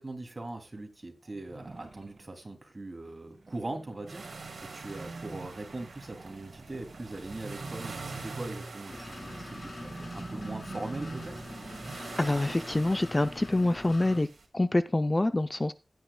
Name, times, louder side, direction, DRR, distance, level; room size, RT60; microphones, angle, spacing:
voice 1, 0.0-4.3 4.7-11.3, right 2 dB, 35° right, 2.7 m, -40 dB
sound 1, 1.2-2.3 3.4-12.0, right 3 dB, 60° right, 2.6 m, -45 dB
sound 2, 4.1-14.5, right 4 dB, 80° right, 2.5 m, -47 dB
sound 3, 8.9-14.2, left 2 dB, 50° left, 3.9 m, -44 dB
voice 2, 12.2-14.3 14.5-15.7, left 2 dB, 25° left, 0.5 m, -26 dB
16.0 x 9.2 x 2.3 m
wide cardioid pair, 65°, 0 cm